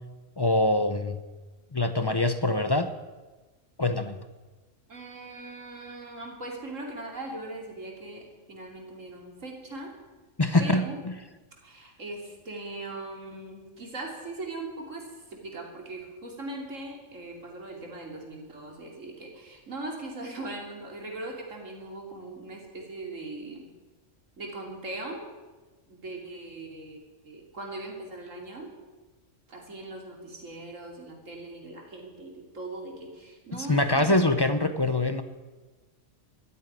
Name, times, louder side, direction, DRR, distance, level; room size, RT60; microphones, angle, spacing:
voice 1, 0.4-1.2 1.7-2.9 3.8-4.2 10.4-11.2 33.5-35.2, left 2 dB, 25° left, 10 dB, 0.6 m, -24 dB
voice 2, 4.9-9.9 10.6-11.0 11.6-23.7 24.4-25.3 25.9-28.7 29.5-34.2, right 2 dB, 80° right, 1 dB, 3.2 m, -40 dB
13.5 x 8.4 x 9.8 m, 1.2 s
omnidirectional pair, 1.3 m